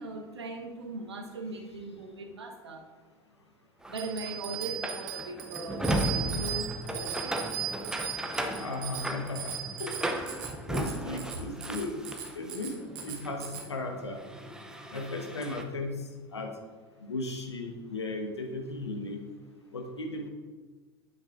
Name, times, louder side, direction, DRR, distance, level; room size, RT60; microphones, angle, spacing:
voice 1, 0.0-2.8 3.9-7.4 14.8-14.9, right 2 dB, 80° right, 2 dB, 1.1 m, -40 dB
sound 1, 3.8-12.5 12.9-15.6, right 1 dB, 5° right, 0.7 m, -36 dB
Bicycle bell, 3.9-13.7, right 9 dB, 55° right, 1.2 m, -38 dB
voice 2, 8.6-10.0 10.7-12.0 12.3-14.2 14.9-16.5 17.0-19.2 19.7-20.3, left 2 dB, 80° left, 3 dB, 1.1 m, -36 dB
9.1 x 7.9 x 2.6 m, 1.4 s
figure-of-eight pair, 80°, 14 cm